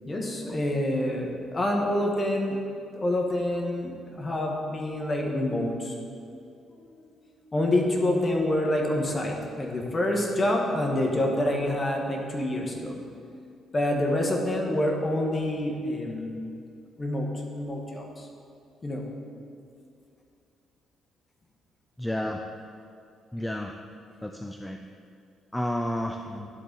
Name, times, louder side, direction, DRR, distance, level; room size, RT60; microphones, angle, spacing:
voice 1, 0.1-2.6 2.9-5.9 6.9-7.1 7.5-12.9 13.7-16.3 17.0-17.3 17.5-18.3 18.8-19.0 26.3-26.4, left 1 dB, 25° left, 0 dB, 1.3 m, -27 dB
voice 2, 22.0-22.4 23.3-23.8 24.2-24.8 25.5-26.2, left 1 dB, 5° left, 4 dB, 0.4 m, -30 dB
11.0 x 4.0 x 3.9 m, 2.5 s
cardioid pair, 90°, 0 cm